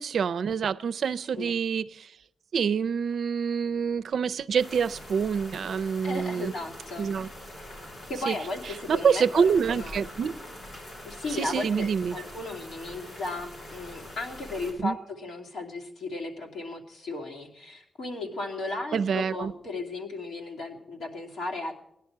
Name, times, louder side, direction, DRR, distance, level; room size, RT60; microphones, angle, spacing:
voice 1, 0.0-2.1 2.5-6.5 7.0-7.3 8.3-8.4 8.9-10.4 11.4-12.2 14.8-15.0 18.9-19.5, right 6 dB, 65° right, 0.4 m, -26 dB
sound 1, 4.6-14.7, left 1 dB, 45° left, 6.0 m, -44 dB
voice 2, 6.0-7.1 8.1-10.0 11.0-21.7, left 2 dB, 90° left, 2.7 m, -35 dB
18.0 x 11.0 x 4.6 m
wide cardioid pair, 180°, 0 cm